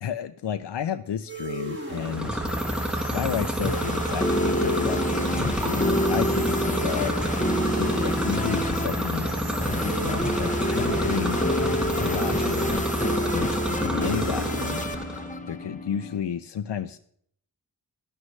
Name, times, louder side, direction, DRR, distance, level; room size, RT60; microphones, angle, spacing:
voice 1, 0.0-2.5 3.1-7.2 7.7-11.4 12.0-12.9 13.1-14.8 15.5-17.0, left 9 dB, 85° left, 9 dB, 0.5 m, -32 dB
sound 1, 1.3-14.8, right 2 dB, 35° right, 5.2 m, -36 dB
sound 2, 1.9-15.3, right 1 dB, ahead, 1.4 m, -29 dB
sound 3, 3.4-16.2, left 1 dB, 20° left, 0.9 m, -28 dB
12.5 x 11.0 x 3.2 m, 0.64 s
wide cardioid pair, 65°, 41 cm